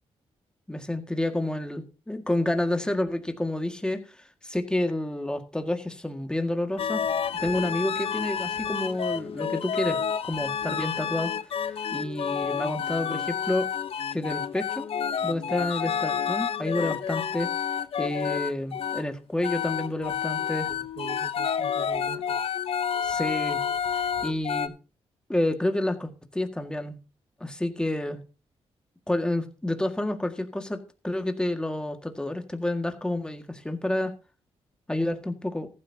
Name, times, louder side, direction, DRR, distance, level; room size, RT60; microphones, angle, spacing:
voice 1, 0.7-7.1 7.4-11.3 11.9-13.7 14.1-14.9 15.2-17.5 18.0-20.7 23.0-23.6 23.9-24.7 25.3-27.0 27.4-28.2 29.1-34.1 34.9-35.7, left 1 dB, 10° left, 7 dB, 1.8 m, -29 dB
sound 1, 6.8-19.0 19.4-24.7, left 7 dB, 60° left, 0.9 m, -29 dB
voice 2, 20.4-22.5, right 6 dB, 65° right, 3 dB, 1.8 m, -43 dB
14.5 x 12.0 x 2.8 m, 0.31 s
cardioid pair, 100°, 11 cm